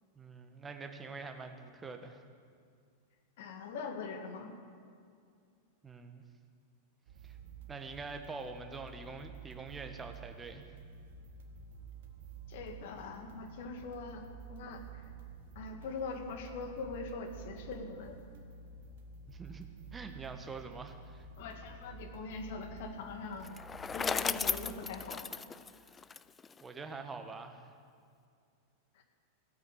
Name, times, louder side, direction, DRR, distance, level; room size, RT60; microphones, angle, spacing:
voice 1, 0.1-2.2 5.8-6.2 7.2-7.4 7.7-10.6 19.3-21.3 26.6-27.7, right 4 dB, 15° right, 6 dB, 1.4 m, -45 dB
voice 2, 3.4-4.6 12.5-15.1 15.6-18.2 21.4-23.5 23.9-25.3 28.9-29.0, left 4 dB, 55° left, 4 dB, 1.9 m, -42 dB
sound 1, 7.1-24.9, right 5 dB, 55° right, 1.6 m, -51 dB
Bicycle, 23.4-26.6, left 5 dB, 15° left, 0.4 m, -36 dB
16.5 x 8.8 x 8.4 m, 2.3 s
figure-of-eight pair, 90°, 0 cm